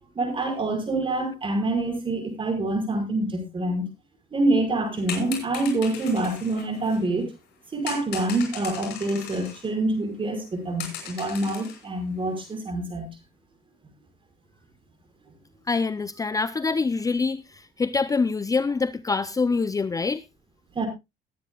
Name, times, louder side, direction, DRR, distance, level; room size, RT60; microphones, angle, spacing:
voice 1, 0.2-3.9 4.3-7.3 7.7-13.1 20.8-20.9, right 2 dB, 30° right, 5.6 m, -26 dB
sound 1, 5.0-7.2 7.9-9.7 10.0-10.1 10.4-10.5 10.8-11.9 12.2-12.5, left 8 dB, 75° left, 6.0 m, -38 dB
voice 2, 15.7-20.2, left 4 dB, 20° left, 0.6 m, -25 dB
21.0 x 9.8 x 2.3 m
cardioid pair, 110°, 17 cm